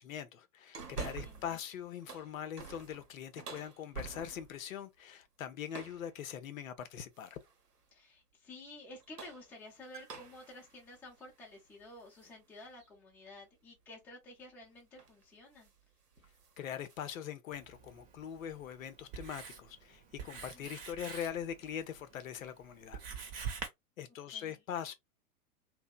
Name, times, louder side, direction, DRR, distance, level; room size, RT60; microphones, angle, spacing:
voice 1, 0.0-7.4 16.6-23.0 24.0-24.9, left 9 dB, 60° left, 0.6 m, -42 dB
sound 1, 0.7-1.6 1.9-4.6 5.7-6.1 7.2-7.6 8.9-12.3 12.8-12.9 14.4-14.6 15.0-15.2 15.5-15.8 16.1-17.2, right 5 dB, 85° right, 0.8 m, -48 dB
voice 2, 0.9-1.6 7.9-15.7 20.4-20.7 24.3-24.6, left 2 dB, 5° left, 0.5 m, -52 dB
Writing, 17.5-23.7, right 6 dB, 40° right, 0.8 m, -46 dB
2.8 x 2.0 x 2.2 m
figure-of-eight pair, 105°, 46 cm